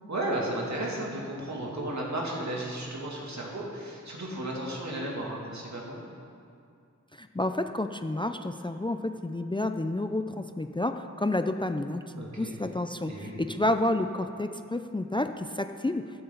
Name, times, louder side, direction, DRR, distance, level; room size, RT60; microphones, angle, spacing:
voice 1, 0.1-6.0 12.2-12.5 13.0-13.4, right 1 dB, 65° right, -3 dB, 2.5 m, -34 dB
voice 2, 7.1-16.0, left 1 dB, 15° left, 8 dB, 0.5 m, -30 dB
13.5 x 12.0 x 4.0 m, 2.4 s
wide cardioid pair, 60°, 31 cm